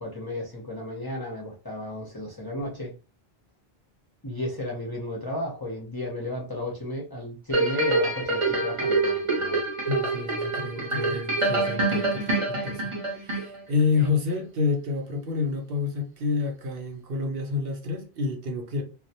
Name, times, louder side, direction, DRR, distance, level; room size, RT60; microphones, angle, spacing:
voice 1, 0.0-2.9 4.2-9.6, left 1 dB, 30° left, 0.5 m, -33 dB
sound 1, 7.5-13.8 14.3-14.4, right 2 dB, 35° right, 0.8 m, -26 dB
voice 2, 9.9-18.8, left 4 dB, 70° right, 0.8 m, -29 dB
2.2 x 2.1 x 2.7 m
omnidirectional pair, 1.0 m